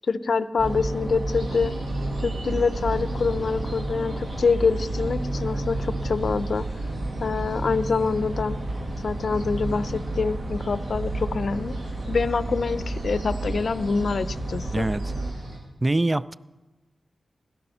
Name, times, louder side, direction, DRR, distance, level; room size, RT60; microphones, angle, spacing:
voice 1, 0.1-1.7 2.2-6.6 7.2-8.6 9.0-11.7 12.1-14.9, left 4 dB, 65° left, 15 dB, 0.6 m, -25 dB
sound 1, 0.6-15.3, right 1 dB, 65° right, 1.9 m, -31 dB
sound 2, 1.3-15.6, right 2 dB, 85° right, 6.6 m, -41 dB
voice 2, 15.8-16.3, right 2 dB, 25° right, 18 dB, 0.4 m, -23 dB
16.5 x 13.0 x 5.6 m, 1.1 s
cardioid pair, 55°, 0 cm